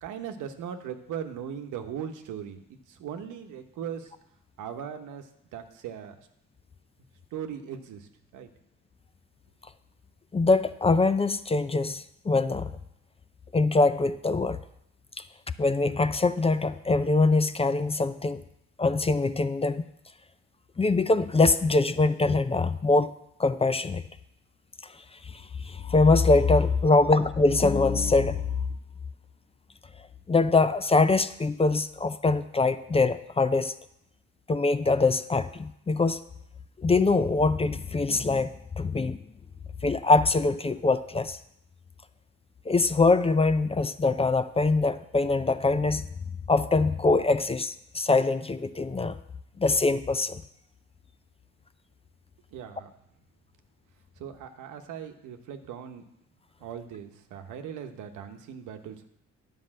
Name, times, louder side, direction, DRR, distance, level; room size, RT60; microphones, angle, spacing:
voice 1, 0.0-4.1 4.6-6.3 7.3-8.5 52.5-52.9 54.2-56.1 56.6-59.0, right 8 dB, 90° right, 7 dB, 1.1 m, -39 dB
voice 2, 10.3-12.7 13.5-14.6 15.6-18.4 18.8-19.8 20.8-23.1 23.4-24.0 25.2-28.5 30.3-33.7 34.5-36.2 36.8-39.2 39.8-41.4 42.7-46.0 46.5-49.2 49.6-50.4, left 3 dB, 20° left, 12 dB, 0.5 m, -23 dB
9.9 x 5.3 x 7.5 m, 0.78 s
cardioid pair, 90°, 30 cm